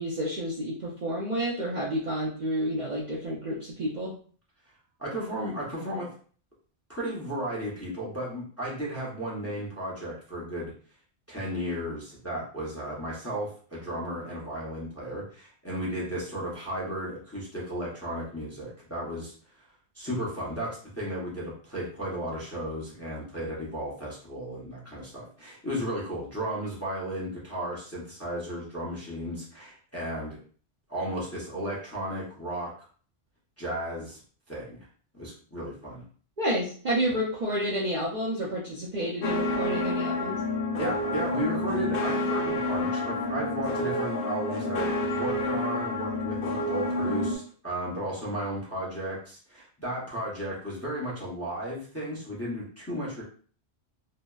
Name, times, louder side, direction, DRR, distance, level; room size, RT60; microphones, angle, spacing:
voice 1, 0.0-4.1 36.4-40.4, equal, 50° right, -6 dB, 0.6 m, -30 dB
voice 2, 5.0-6.1 6.9-10.7 11.3-19.3 19.9-30.4 30.9-32.7 33.6-34.2 34.5-34.9 35.1-36.0 40.8-53.2, right 1 dB, 15° left, -6 dB, 0.6 m, -34 dB
sound 1, 39.2-47.4, left 2 dB, 75° left, 0.9 m, -29 dB
2.7 x 2.0 x 2.3 m, 0.44 s
omnidirectional pair, 1.2 m